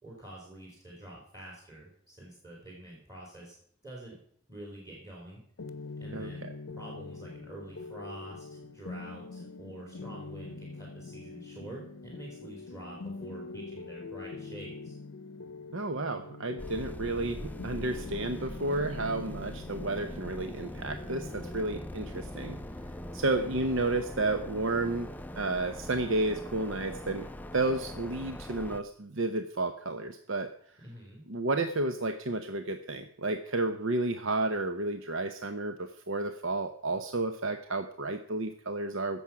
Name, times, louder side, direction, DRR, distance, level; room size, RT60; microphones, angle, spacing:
voice 1, 0.0-3.6 3.8-4.1 4.5-5.4 6.0-15.0 30.8-31.2, right 1 dB, 20° right, -3 dB, 3.5 m, -47 dB
sound 1, 5.6-25.2, left 3 dB, 80° left, 0.7 m, -45 dB
voice 2, 6.1-6.5 15.7-22.6 23.1-25.1 25.4-27.2 27.5-30.5 31.3-39.2, right 2 dB, 65° right, 7 dB, 0.8 m, -31 dB
sound 2, 16.6-28.8, left 1 dB, 10° left, 0.4 m, -42 dB
16.5 x 7.1 x 5.9 m, 0.65 s
head